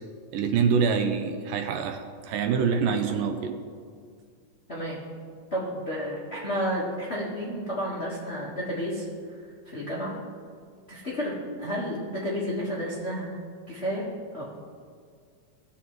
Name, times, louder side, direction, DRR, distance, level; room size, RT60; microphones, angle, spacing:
voice 1, 0.3-3.6, right 6 dB, 80° right, 7 dB, 2.2 m, -25 dB
voice 2, 4.7-5.0 5.5-9.1 9.7-10.1 10.9-13.3 13.7-14.0 14.3-14.4, equal, 65° left, -7 dB, 0.6 m, -31 dB
18.0 x 7.1 x 3.1 m, 2.1 s
omnidirectional pair, 4.1 m